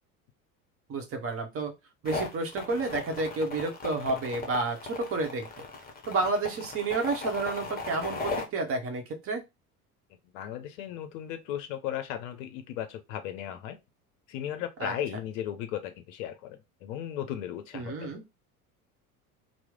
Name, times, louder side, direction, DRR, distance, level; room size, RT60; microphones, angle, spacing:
voice 1, 0.9-1.7 2.0-5.5 6.1-9.4 14.8-14.9 17.7-18.2, right 3 dB, 30° right, 0.9 m, -30 dB
sound 1, 2.1-8.4, left 3 dB, 20° left, 0.8 m, -37 dB
voice 2, 10.1-13.8 14.3-18.1, left 10 dB, 55° left, 0.6 m, -36 dB
3.0 x 2.0 x 3.6 m
figure-of-eight pair, 65°, 44 cm